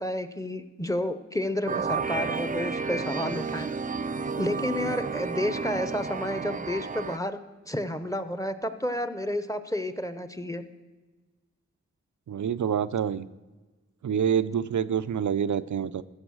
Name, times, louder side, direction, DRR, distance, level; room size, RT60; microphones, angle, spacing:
voice 1, 0.0-3.7 4.4-7.4 7.7-10.6, left 1 dB, 10° left, 10 dB, 0.8 m, -30 dB
sound 1, 1.7-7.2, right 4 dB, 30° right, 0.4 m, -31 dB
voice 2, 12.3-13.3 14.0-16.0, right 8 dB, 85° right, 15 dB, 0.5 m, -27 dB
14.0 x 7.1 x 6.3 m, 1.2 s
wide cardioid pair, 65°, 29 cm